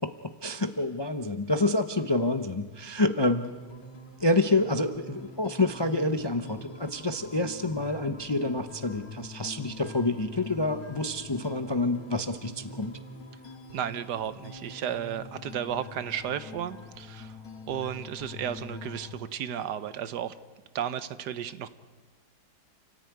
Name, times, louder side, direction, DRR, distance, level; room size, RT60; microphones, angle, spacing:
voice 1, 0.0-3.5 4.2-13.0, left 2 dB, 30° left, 8 dB, 0.4 m, -28 dB
sound 1, 3.2-19.2, left 3 dB, 60° left, 2.6 m, -45 dB
voice 2, 13.7-17.4 17.7-20.3 20.7-21.7, right 9 dB, 80° right, 13 dB, 1.5 m, -33 dB
29.0 x 14.0 x 9.3 m, 1.4 s
omnidirectional pair, 1.8 m